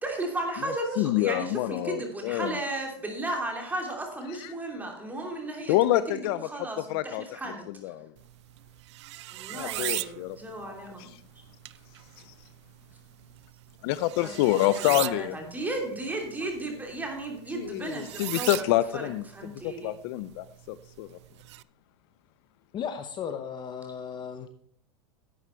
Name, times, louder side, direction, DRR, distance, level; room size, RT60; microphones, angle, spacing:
voice 1, 0.0-7.7 9.3-11.1 14.2-18.6 18.9-19.0 19.3-19.9, right 2 dB, 10° right, 1 dB, 2.9 m, -35 dB
voice 2, 1.0-2.5 5.7-6.5 6.9-7.2 7.8-8.1 9.5-10.4 10.7-10.8 12.3-12.4 13.8-15.4 17.5-19.2 19.6-21.2, left 15 dB, 60° left, 16 dB, 0.5 m, -27 dB
sound 1, 8.2-21.6, right 16 dB, 75° right, 0.4 m, -40 dB
voice 3, 22.7-24.5, left 7 dB, 30° left, 9 dB, 0.8 m, -35 dB
11.5 x 8.1 x 4.4 m, 0.64 s
supercardioid pair, 120°, 15 cm